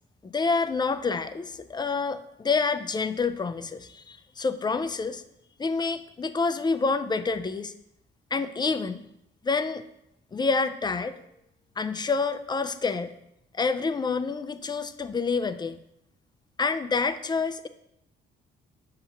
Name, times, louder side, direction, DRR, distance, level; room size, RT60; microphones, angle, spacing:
voice 1, 0.2-5.2 5.6-7.7 8.3-9.0 9.4-9.8 10.3-11.2 11.8-13.1 13.5-15.8 16.6-17.7, left 4 dB, 20° left, 10 dB, 0.4 m, -28 dB
6.7 x 2.9 x 5.6 m, 0.80 s
cardioid pair, 90°, 20 cm